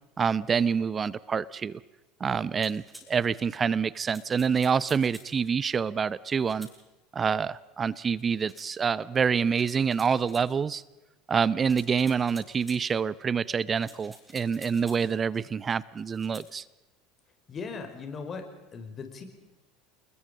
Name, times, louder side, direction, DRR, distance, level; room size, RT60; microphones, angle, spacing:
voice 1, 0.2-1.8 2.2-6.7 7.1-10.8 11.3-16.6, right 6 dB, 30° right, 21 dB, 0.7 m, -27 dB
sound 1, 2.6-3.1 4.0-5.3 6.4-6.8 8.5-8.7 9.6-10.5 11.7-12.8 13.8-15.1 16.1-16.5, right 1 dB, 5° right, 6.9 m, -50 dB
voice 2, 17.5-18.5 18.7-19.2, left 5 dB, 30° left, 6 dB, 5.0 m, -38 dB
28.5 x 21.5 x 5.2 m, 1.0 s
figure-of-eight pair, 70°, 0 cm